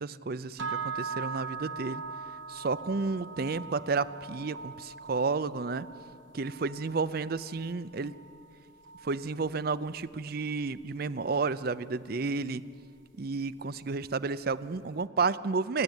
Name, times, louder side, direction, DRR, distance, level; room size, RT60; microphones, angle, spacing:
voice 1, 0.0-2.0 2.5-5.9 6.3-8.1 9.0-12.6 13.2-15.8, right 4 dB, 50° right, 16 dB, 0.5 m, -31 dB
sound 1, 0.6-10.7, right 5 dB, 80° right, 1.2 m, -42 dB
29.5 x 11.0 x 9.0 m, 2.2 s
head